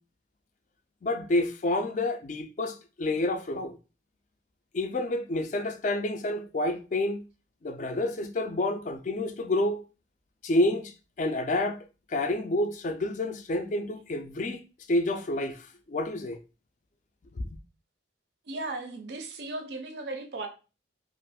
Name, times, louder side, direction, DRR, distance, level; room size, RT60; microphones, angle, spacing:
voice 1, 1.0-3.8 4.7-7.2 7.6-9.8 10.4-10.9 11.2-11.8 12.1-14.6 14.9-16.4 17.4-17.5, left 1 dB, 40° left, 0.3 m, -29 dB
voice 2, 18.5-20.5, right 2 dB, 55° right, 0.4 m, -36 dB
2.5 x 2.3 x 3.4 m
head